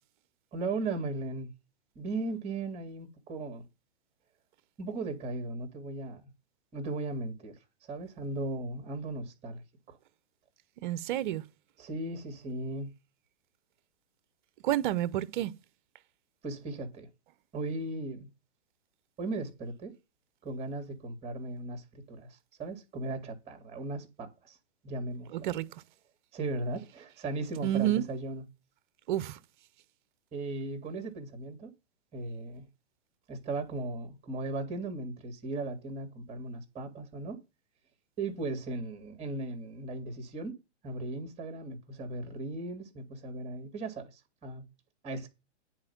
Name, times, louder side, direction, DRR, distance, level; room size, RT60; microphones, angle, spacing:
voice 1, 0.5-1.5 2.0-3.6 4.8-6.3 6.7-7.6 7.9-9.6 9.9-10.0 11.8-12.9 16.4-17.1 17.5-18.3 19.2-19.9 20.4-24.6 24.8-25.5 26.3-28.5 30.3-31.7 32.1-32.7 33.3-37.4 38.2-40.6 40.8-44.7 45.0-45.3, right 2 dB, 20° right, 2.4 m, -37 dB
voice 2, 10.8-11.4 14.6-15.5 25.3-25.8 27.6-28.1 29.1-29.4, right 13 dB, 45° right, 0.7 m, -29 dB
9.7 x 4.5 x 7.3 m
hypercardioid pair, 140°, 35 cm